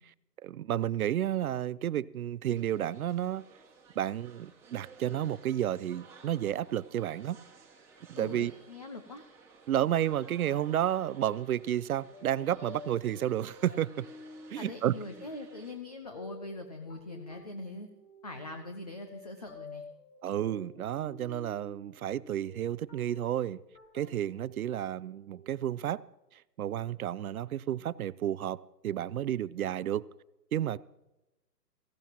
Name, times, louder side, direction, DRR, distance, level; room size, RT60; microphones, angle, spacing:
voice 1, 0.4-3.4 4.0-7.4 8.1-8.5 9.7-14.1 14.5-14.9 20.2-23.6 23.9-26.0 26.6-30.1 30.5-30.8, right 11 dB, 60° right, 20 dB, 0.5 m, -31 dB
sound 1, 2.6-15.7, right 4 dB, 5° right, 2.0 m, -57 dB
voice 2, 8.1-9.2 14.6-17.9 18.2-19.8, left 2 dB, 25° left, 6 dB, 0.4 m, -42 dB
sound 2, 10.4-25.8, left 2 dB, 80° left, 4.9 m, -52 dB
17.5 x 15.5 x 2.9 m, 0.97 s
hypercardioid pair, 145°, 50 cm